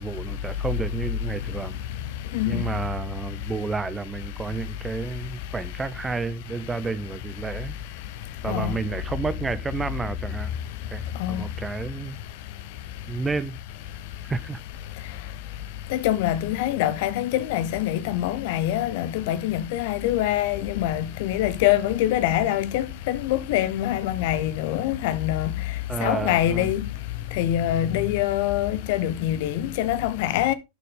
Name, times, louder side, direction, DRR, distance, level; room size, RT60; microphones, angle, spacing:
voice 1, 0.0-1.8 2.5-7.7 8.4-10.5 10.9-11.0 11.3-12.2 13.1-13.6 14.3-14.6 25.9-26.7, right 4 dB, 15° right, 0.8 m, -30 dB
voice 2, 15.9-25.5 26.0-26.8 27.4-30.5, left 13 dB, 50° left, 0.8 m, -24 dB
10.5 x 6.6 x 3.6 m
figure-of-eight pair, 90°, 0 cm